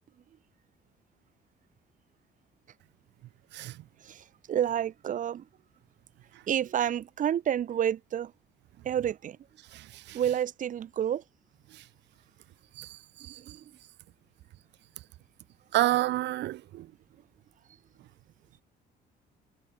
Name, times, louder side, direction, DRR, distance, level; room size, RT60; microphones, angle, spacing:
voice 1, 4.0-5.5 6.5-8.3 8.8-9.4 10.1-11.2 13.3-13.6, right 10 dB, 50° right, 7.2 m, -29 dB
voice 2, 9.7-10.2 11.7-11.8 12.8-13.6 15.7-16.9, right 15 dB, 80° right, 4.5 m, -30 dB
cardioid pair, 165°, 18 cm